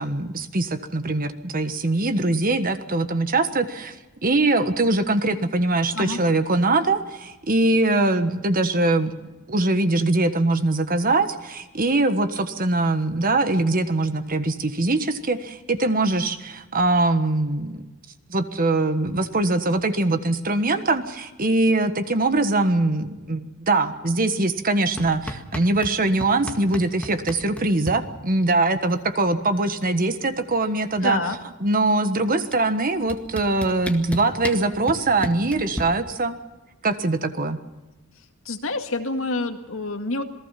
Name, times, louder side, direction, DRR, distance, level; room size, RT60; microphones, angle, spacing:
voice 1, 0.0-4.0 4.2-17.8 18.3-31.2 31.6-36.4 36.8-37.6, right 2 dB, 40° right, 10 dB, 1.4 m, -22 dB
sound 1, 25.0-26.0 26.2-28.0 29.2-29.3 29.6-30.0 30.3-31.6 32.5-32.6 33.1-35.8, left 1 dB, 5° left, 1.9 m, -33 dB
voice 2, 31.0-31.4 38.5-40.2, left 3 dB, 65° left, 5 dB, 2.2 m, -27 dB
27.5 x 18.5 x 5.8 m, 1.1 s
head